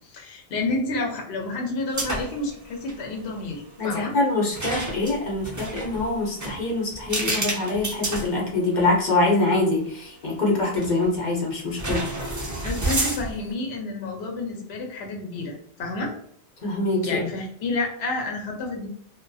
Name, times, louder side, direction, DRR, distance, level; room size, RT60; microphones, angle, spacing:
voice 1, 0.0-4.1 12.6-16.1 17.0-18.9, left 2 dB, 80° left, 1 dB, 0.9 m, -30 dB
sound 1, 1.9-2.5 2.7-3.0 4.5-8.9 9.4-9.5 10.7-11.2 11.8-13.5, right 2 dB, 25° right, 0.4 m, -30 dB
voice 2, 3.8-12.0 16.6-17.2, left 2 dB, 50° left, -3 dB, 0.8 m, -24 dB
2.5 x 2.3 x 2.3 m, 0.64 s
omnidirectional pair, 1.0 m